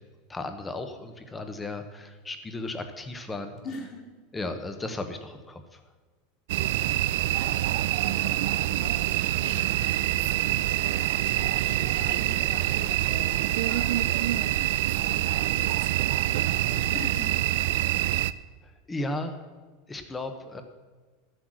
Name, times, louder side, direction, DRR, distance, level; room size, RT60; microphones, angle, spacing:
voice 1, 0.3-3.6 4.3-5.8 18.6-19.4 19.9-20.6, left 2 dB, 10° left, 7 dB, 1.0 m, -35 dB
voice 2, 3.6-4.1 6.5-7.3 7.6-16.1 16.4-17.8, left 2 dB, 35° left, 0 dB, 2.8 m, -44 dB
sound 1, 6.5-18.3, right 14 dB, 70° right, 0.4 m, -26 dB
13.5 x 7.9 x 6.4 m, 1.4 s
supercardioid pair, 155°, 0 cm